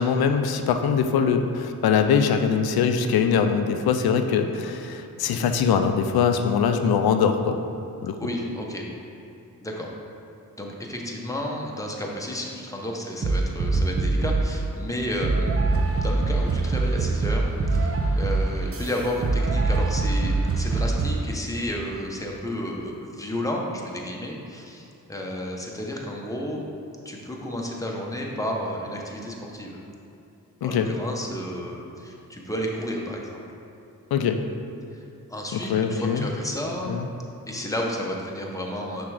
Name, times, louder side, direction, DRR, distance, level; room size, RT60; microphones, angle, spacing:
voice 1, 0.0-7.6 8.0-8.2 30.6-30.9 34.1-34.4 35.7-36.3 36.9-37.1, left 6 dB, 85° left, 7 dB, 0.5 m, -22 dB
voice 2, 8.2-8.8 9.6-9.9 10.6-26.6 27.0-29.8 30.6-33.4 35.3-36.9 37.5-39.1, equal, 10° left, -1 dB, 1.1 m, -32 dB
sound 1, 13.2-14.5 15.2-21.2, right 3 dB, 40° right, 0.7 m, -23 dB
5.8 x 3.6 x 4.9 m, 2.7 s
cardioid pair, 45°, 36 cm